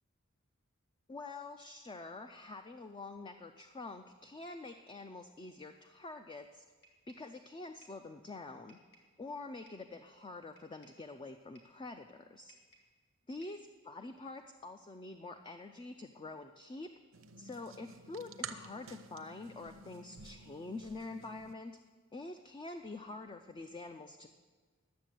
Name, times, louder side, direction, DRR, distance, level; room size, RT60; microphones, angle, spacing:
voice 1, 1.1-6.6 7.1-8.8 9.2-12.6 13.3-16.9 17.4-21.7 22.1-24.3, left 3 dB, 25° left, 7 dB, 0.4 m, -46 dB
sound 1, 6.8-7.3 7.8-8.1 8.7-9.2 9.7-9.9 10.6-11.1 11.5-11.8 12.5-13.0 13.4-13.7, right 1 dB, 55° left, 2.4 m, -64 dB
sound 2, 17.1-21.5, right 6 dB, 75° right, 0.7 m, -50 dB
11.5 x 7.2 x 7.6 m, 1.5 s
head